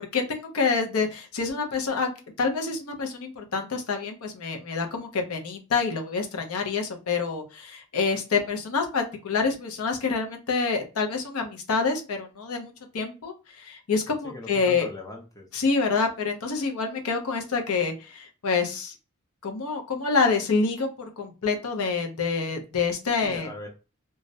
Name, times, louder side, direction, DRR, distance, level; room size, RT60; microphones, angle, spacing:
voice 1, 0.0-2.1 2.4-14.9 15.5-18.9 19.4-20.9 21.2-23.5, left 4 dB, 85° left, 4 dB, 0.6 m, -27 dB
voice 2, 14.2-15.5 23.2-23.7, left 2 dB, 15° left, 0 dB, 0.5 m, -40 dB
2.3 x 2.0 x 2.7 m, 0.31 s
head